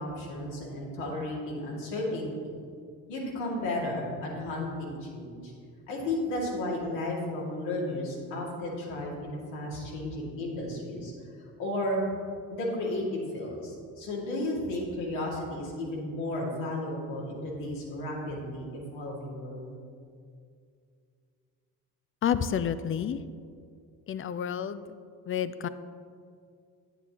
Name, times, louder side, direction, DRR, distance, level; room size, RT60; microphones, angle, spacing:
voice 1, 0.0-2.6 3.1-5.5 5.9-12.0 12.5-19.7, left 1 dB, 80° left, -3 dB, 2.2 m, -33 dB
voice 2, 22.2-23.2 24.1-25.0 25.3-25.7, left 8 dB, 30° left, 14 dB, 0.4 m, -30 dB
9.3 x 9.2 x 2.9 m, 2.3 s
hypercardioid pair, 60°, 42 cm